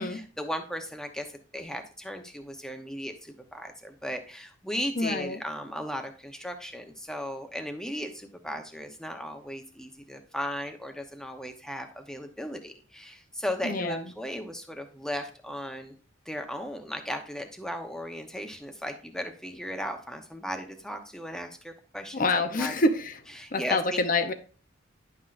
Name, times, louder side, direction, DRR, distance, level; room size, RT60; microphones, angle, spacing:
voice 1, 0.0-16.0 16.3-22.7 23.4-24.0, equal, 5° left, 5 dB, 0.8 m, -36 dB
voice 2, 5.0-5.4 13.6-14.1 22.1-23.2 23.5-24.3, left 2 dB, 45° left, 9 dB, 0.7 m, -26 dB
10.5 x 5.8 x 2.5 m, 0.40 s
head